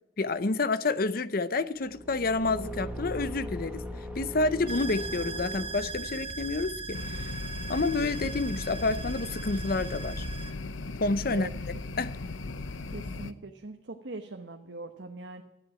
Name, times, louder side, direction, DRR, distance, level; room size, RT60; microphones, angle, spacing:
voice 1, 0.2-3.8 4.1-7.2 7.7-10.2 11.0-11.5 12.0-12.1, left 3 dB, 50° left, 0.6 m, -29 dB
Car / Engine, 1.8-6.4, equal, 5° right, 1.3 m, -39 dB
sound 1, 4.7-10.5, right 3 dB, 30° right, 1.0 m, -38 dB
sound 2, 6.9-13.3, left 3 dB, 85° left, 0.7 m, -38 dB
voice 2, 12.9-15.4, right 2 dB, 70° right, 1.1 m, -41 dB
13.0 x 7.9 x 8.8 m
head